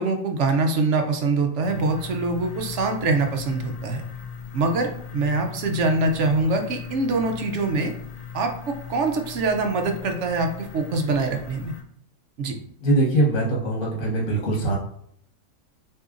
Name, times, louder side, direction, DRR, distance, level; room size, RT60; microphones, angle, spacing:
voice 1, 0.0-4.0 4.5-7.9 8.3-11.7 12.4-12.6, right 3 dB, 65° right, 4 dB, 0.9 m, -24 dB
sound 1, 1.6-11.8, left 6 dB, 90° left, 0.3 m, -38 dB
voice 2, 12.8-14.8, right 2 dB, 65° left, -4 dB, 1.4 m, -22 dB
6.5 x 2.8 x 2.5 m, 0.69 s
omnidirectional pair, 1.4 m